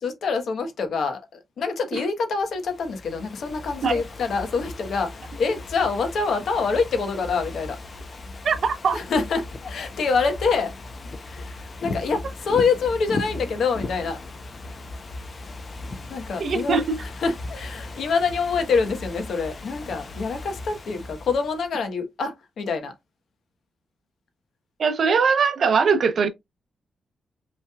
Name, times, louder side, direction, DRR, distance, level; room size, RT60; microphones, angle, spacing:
voice 1, 0.0-7.8 8.9-10.7 11.3-14.2 16.1-16.8 17.2-22.9, left 4 dB, 65° left, 1.1 m, -26 dB
Ocean / Fireworks, 2.5-21.7, left 2 dB, 35° left, 0.7 m, -37 dB
voice 2, 8.4-9.0 16.4-17.0 24.8-26.3, right 5 dB, 50° right, 0.8 m, -21 dB
5.5 x 3.3 x 2.4 m
wide cardioid pair, 170°, 0 cm